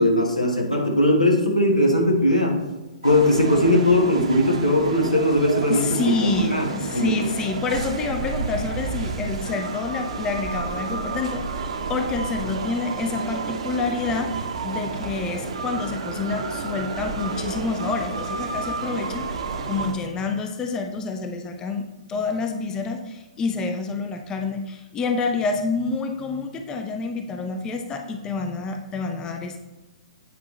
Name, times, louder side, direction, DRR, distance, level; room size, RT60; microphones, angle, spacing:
voice 1, 0.0-2.6 3.0-6.7 6.9-7.3, left 1 dB, 90° left, 1 dB, 1.6 m, -19 dB
sound 1, 3.0-19.9, right 4 dB, 55° right, 1.1 m, -31 dB
voice 2, 5.7-19.4 19.6-29.6, left 4 dB, 15° left, 5 dB, 0.6 m, -28 dB
9.3 x 5.5 x 3.2 m, 1.1 s
figure-of-eight pair, 115°, 4 cm